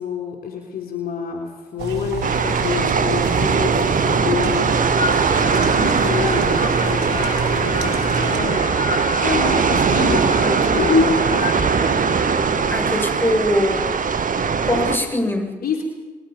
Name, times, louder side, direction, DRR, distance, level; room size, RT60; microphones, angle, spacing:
voice 1, 0.0-4.8 5.8-8.0 8.3-11.0 11.3-11.8 15.6-15.8, left 6 dB, 60° left, 1 dB, 3.8 m, -28 dB
sound 1, 1.8-8.4, right 4 dB, 85° right, 2.7 m, -27 dB
sound 2, 2.2-15.0, right 5 dB, 50° right, 1.9 m, -20 dB
sound 3, 4.9-13.0, left 3 dB, 40° left, 1.7 m, -27 dB
voice 2, 12.7-14.0 14.7-15.5, left 1 dB, 15° left, 2 dB, 7.4 m, -21 dB
28.5 x 21.0 x 5.6 m, 1.3 s
hypercardioid pair, 50°, 17 cm